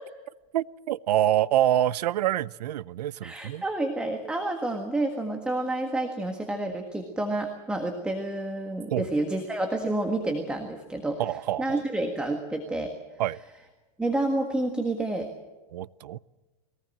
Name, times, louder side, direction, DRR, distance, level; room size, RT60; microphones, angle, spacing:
voice 1, 0.5-3.6 8.9-9.1 11.2-11.8 13.2-13.4 15.7-16.2, right 12 dB, 85° right, 21 dB, 0.6 m, -26 dB
voice 2, 3.2-11.2 11.6-12.9 14.0-15.3, right 2 dB, 5° right, 4 dB, 1.7 m, -29 dB
22.5 x 18.5 x 7.7 m, 1.2 s
supercardioid pair, 145°, 20 cm